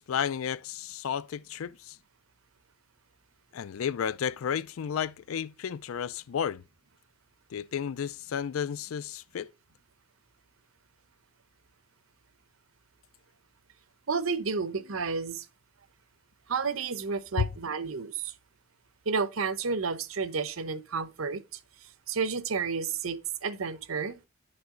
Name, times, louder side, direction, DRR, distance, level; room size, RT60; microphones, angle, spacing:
voice 1, 0.0-2.0 3.5-6.6 7.5-9.5 17.4-17.5, left 8 dB, 90° left, 0.4 m, -32 dB
voice 2, 14.1-15.5 16.5-18.3 19.1-21.4 22.1-24.2, right 5 dB, 85° right, 0.9 m, -31 dB
10.5 x 5.6 x 3.8 m
head